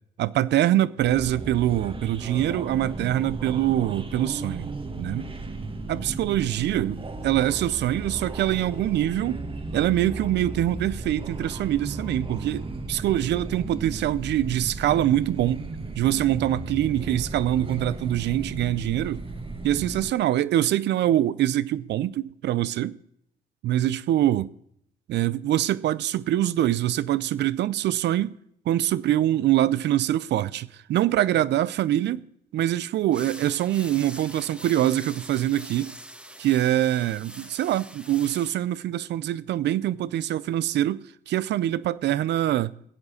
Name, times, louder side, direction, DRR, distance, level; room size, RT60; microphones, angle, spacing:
voice 1, 0.2-5.3 5.9-7.0 7.2-9.4 9.7-15.7 16.0-19.2 19.6-23.0 23.6-24.5 25.1-28.3 28.7-32.2 32.5-35.9 36.4-42.7, right 13 dB, 75° right, 0.5 m, -24 dB
sound 1, 1.0-20.1, right 2 dB, 30° right, 1.3 m, -35 dB
sound 2, 33.1-38.5, right 1 dB, 5° right, 1.2 m, -43 dB
17.5 x 7.3 x 6.4 m
supercardioid pair, 70°, 18 cm